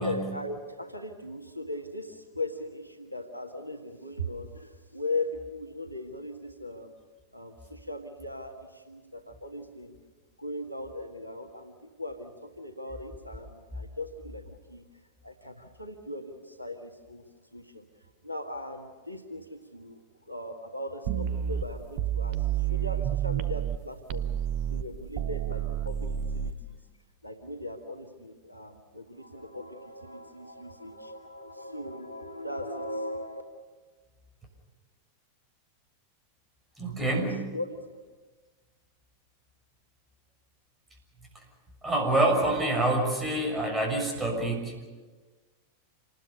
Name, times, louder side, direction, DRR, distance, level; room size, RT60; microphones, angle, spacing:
voice 1, 0.0-6.9 7.3-10.0 10.4-14.8 15.2-17.9 18.2-24.3 24.7-26.8 27.2-33.4 37.5-38.0, left 1 dB, 90° right, 5 dB, 1.7 m, -39 dB
sound 1, 21.1-23.8 24.1-26.5, right 10 dB, 45° right, 0.9 m, -30 dB
voice 2, 36.8-37.5 41.8-44.8, right 2 dB, 15° right, 2 dB, 6.7 m, -27 dB
27.0 x 20.0 x 6.7 m, 1.3 s
figure-of-eight pair, 90°, 0 cm